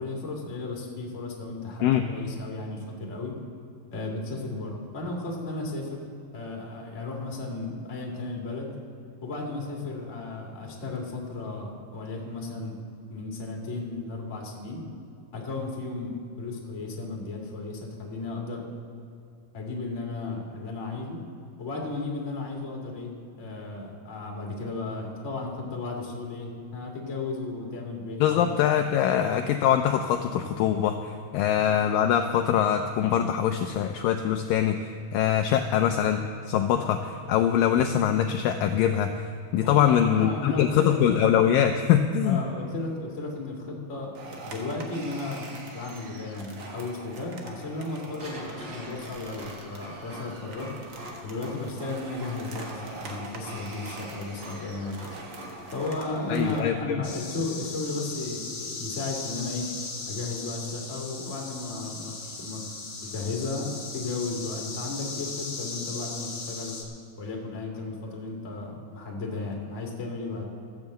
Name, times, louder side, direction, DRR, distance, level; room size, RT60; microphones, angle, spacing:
voice 1, 0.0-3.3 3.9-5.9 6.3-8.7 9.2-12.8 13.1-14.8 15.3-18.7 19.5-21.2 21.6-23.1 23.4-28.5 39.6-41.0 42.2-50.7 51.2-55.1 55.7-59.7 60.1-62.6 63.0-66.7 67.2-70.4, left 3 dB, 25° left, -1 dB, 1.7 m, -34 dB
voice 2, 28.2-39.3 39.5-42.5 56.3-57.0, left 9 dB, 80° left, 6 dB, 2.1 m, -23 dB
sound 1, 44.1-56.6, right 3 dB, 90° right, 1.0 m, -44 dB
Printer, 48.2-56.1, right 1 dB, 40° right, 4.3 m, -44 dB
sound 2, 57.0-66.8, left 4 dB, 50° left, 1.3 m, -38 dB
14.0 x 7.1 x 7.7 m, 2.5 s
omnidirectional pair, 4.4 m